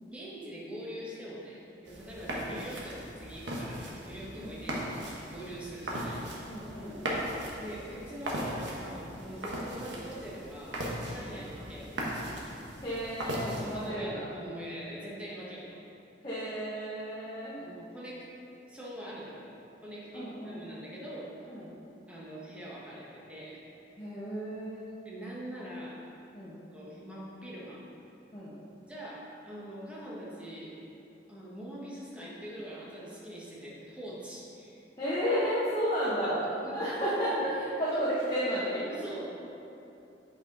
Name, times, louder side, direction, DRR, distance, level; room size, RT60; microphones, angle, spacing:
voice 1, 0.0-5.0 5.3-6.2 7.6-12.0 13.7-15.8 17.6-18.3 18.7-19.5 19.8-21.3 22.1-23.6 25.0-26.0 26.7-27.8 28.9-30.7 31.3-34.8 36.0-36.3 36.6-36.8 38.9-39.5, equal, 5° right, -6 dB, 1.3 m, -43 dB
sound 1, 1.9-13.9, equal, 80° right, 1.2 m, -38 dB
voice 2, 6.5-7.2 11.2-11.4 12.8-14.3 16.2-17.6 20.1-20.7 21.5-21.7 24.0-24.9 26.3-26.6 28.3-28.6 35.0-36.4 36.7-38.9, equal, 25° left, -10 dB, 1.1 m, -32 dB
8.2 x 5.7 x 3.9 m, 2.9 s
head